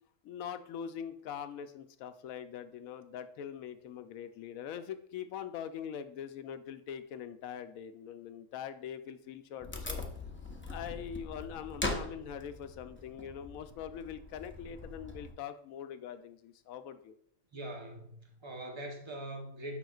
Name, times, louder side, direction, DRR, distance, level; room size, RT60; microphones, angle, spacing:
voice 1, 0.2-10.0 10.7-17.2, left 8 dB, 75° left, 1.0 m, -43 dB
Wood, 9.6-15.3, left 2 dB, 20° left, 0.3 m, -41 dB
voice 2, 17.5-19.8, right 1 dB, 25° right, 0.8 m, -42 dB
9.0 x 5.7 x 2.4 m
omnidirectional pair, 1.5 m